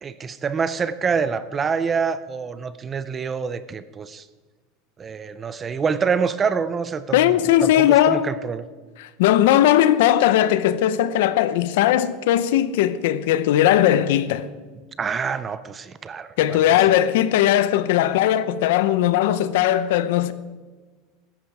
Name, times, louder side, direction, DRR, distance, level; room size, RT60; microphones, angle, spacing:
voice 1, 0.0-4.2 5.0-7.4 7.6-8.7 15.0-16.8, right 5 dB, 15° right, 0.4 m, -26 dB
voice 2, 7.1-8.3 9.0-14.5 16.4-20.3, left 12 dB, 65° left, 0.8 m, -18 dB
15.5 x 13.5 x 4.8 m
supercardioid pair, 180°, 0 cm